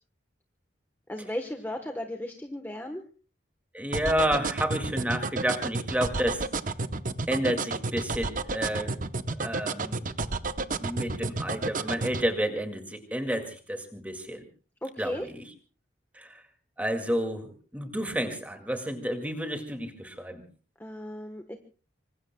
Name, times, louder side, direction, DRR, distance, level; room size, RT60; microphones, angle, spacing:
voice 1, 1.1-3.0 14.8-15.3 20.8-21.6, left 1 dB, 10° left, 5 dB, 1.1 m, -35 dB
voice 2, 3.7-6.5 7.3-9.0 9.3-10.1 10.8-14.4 15.0-15.4 16.1-16.4 16.8-20.4, equal, 10° right, 6 dB, 2.1 m, -30 dB
sound 1, 3.9-12.2, right 3 dB, 40° right, 0.8 m, -30 dB
25.5 x 25.0 x 2.2 m, 0.38 s
head